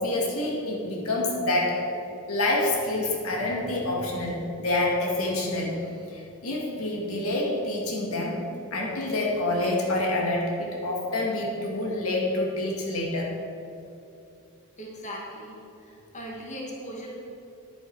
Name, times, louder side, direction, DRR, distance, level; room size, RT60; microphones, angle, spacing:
voice 1, 0.0-1.8 2.3-5.8 6.1-8.4 8.7-13.3, left 2 dB, 85° left, -2 dB, 1.9 m, -27 dB
voice 2, 14.8-17.2, equal, 35° left, -2 dB, 1.6 m, -39 dB
10.5 x 8.6 x 4.7 m, 2.7 s
head